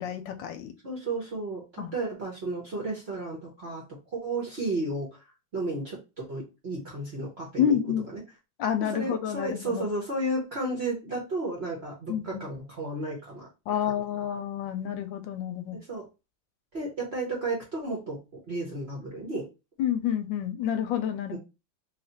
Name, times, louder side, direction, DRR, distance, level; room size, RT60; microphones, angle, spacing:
voice 1, 0.0-0.7 1.8-1.9 7.6-8.1 8.6-9.9 12.1-12.4 13.7-15.8 19.8-21.4, left 9 dB, 75° left, 8 dB, 1.2 m, -29 dB
voice 2, 0.8-5.1 5.5-7.8 8.9-13.5 15.7-16.1 16.7-18.2 18.5-19.5 21.3-21.4, right 2 dB, 45° right, -2 dB, 0.9 m, -33 dB
3.3 x 2.5 x 3.9 m, 0.27 s
omnidirectional pair, 2.1 m